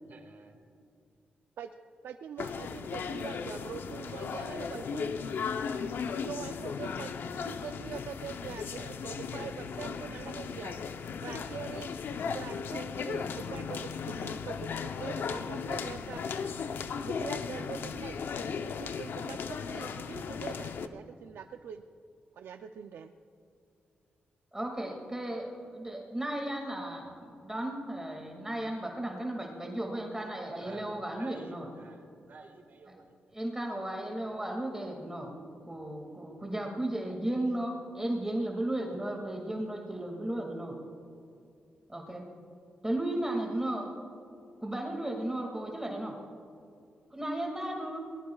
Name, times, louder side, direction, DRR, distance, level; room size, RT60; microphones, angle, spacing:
voice 1, 0.1-0.6 30.6-33.1, right 4 dB, 60° right, 5 dB, 1.9 m, -51 dB
voice 2, 2.0-5.1 6.3-7.1 7.4-10.8 11.2-11.9 12.3-16.2 17.0-18.2 18.5-21.8 22.3-23.1, right 8 dB, 80° right, 6 dB, 0.5 m, -43 dB
sound 1, 2.4-20.9, left 6 dB, 75° left, 0.7 m, -36 dB
voice 3, 24.5-31.6 33.3-35.3 35.7-40.8 41.9-42.3 42.8-43.9 44.6-46.1 47.1-48.0, right 1 dB, 15° right, 1 dB, 2.1 m, -35 dB
22.5 x 19.5 x 2.3 m, 2.5 s
cardioid pair, 80°, 4 cm